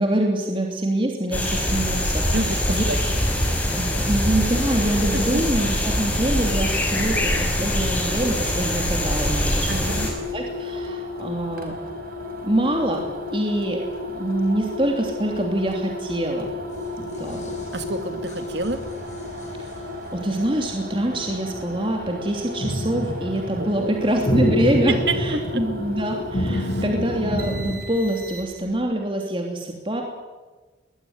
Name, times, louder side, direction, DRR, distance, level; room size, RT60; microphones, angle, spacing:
voice 1, 0.0-2.8 3.7-9.9 10.3-11.7 12.4-13.8 14.1-16.5 17.0-17.4 19.6-19.7 20.1-30.0, right 1 dB, 30° right, 2 dB, 3.0 m, -25 dB
sound 1, 1.3-10.1, left 1 dB, 10° left, 5.7 m, -23 dB
voice 2, 2.3-3.0 5.1-5.4 9.7-10.1 17.7-18.8 23.6-24.0 25.1-25.2 25.5-25.6 26.5-26.8, right 2 dB, 70° right, 8 dB, 2.5 m, -28 dB
sound 2, 9.7-28.7, left 2 dB, 50° right, 4.7 m, -34 dB
sound 3, 16.5-20.4 21.1-22.2 22.6-27.8, equal, 40° left, 6.6 m, -29 dB
21.5 x 21.5 x 9.8 m, 1.2 s
head